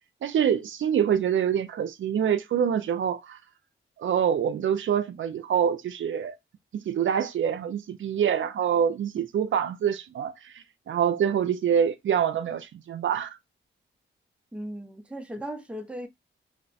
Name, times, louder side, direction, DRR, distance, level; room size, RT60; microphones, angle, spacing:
voice 1, 0.2-3.4 4.0-6.3 6.7-13.3, right 8 dB, 70° right, 0.4 m, -26 dB
voice 2, 14.5-16.1, equal, 5° right, 0.6 m, -37 dB
3.1 x 2.1 x 4.1 m
cardioid pair, 75°, 21 cm